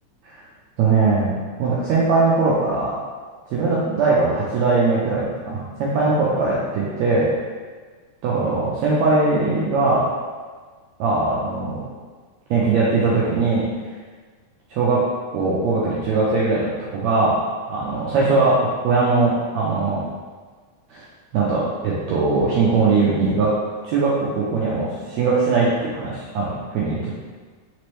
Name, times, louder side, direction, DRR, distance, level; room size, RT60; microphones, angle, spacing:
voice 1, 0.8-1.3 1.6-2.9 3.5-7.3 8.2-10.1 11.0-11.9 12.5-13.6 14.7-15.0 15.3-17.4 17.7-20.0 20.9-21.0 21.3-23.5 23.8-27.1, right 3 dB, 90° right, -6 dB, 1.5 m, -20 dB
5.0 x 3.0 x 3.1 m, 1.5 s
omnidirectional pair, 3.9 m